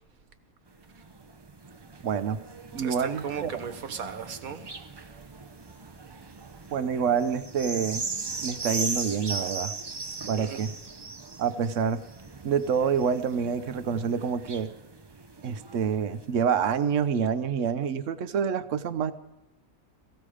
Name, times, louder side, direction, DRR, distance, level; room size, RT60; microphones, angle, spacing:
sound 1, 0.7-16.5 17.2-17.3, right 3 dB, 35° right, 0.4 m, -39 dB
voice 1, 2.0-2.4 2.7-3.5 6.7-8.1 8.4-9.7 10.3-10.8 11.4-12.0 12.4-14.7 15.4-19.1, right 7 dB, 65° right, 12 dB, 1.1 m, -27 dB
voice 2, 2.8-4.9 10.3-10.6, right 6 dB, 85° right, 9 dB, 1.6 m, -37 dB
17.0 x 15.5 x 5.0 m, 0.94 s
omnidirectional pair, 1.5 m